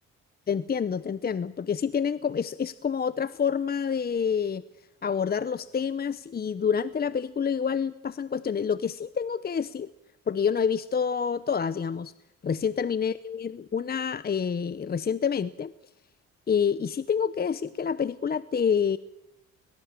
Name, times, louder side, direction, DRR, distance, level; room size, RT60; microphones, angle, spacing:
voice 1, 0.5-4.6 5.0-9.9 10.3-12.1 12.4-15.7 16.5-19.0, left 7 dB, 30° left, 15 dB, 0.7 m, -27 dB
21.5 x 21.5 x 7.4 m, 0.89 s
cardioid pair, 90°, 30 cm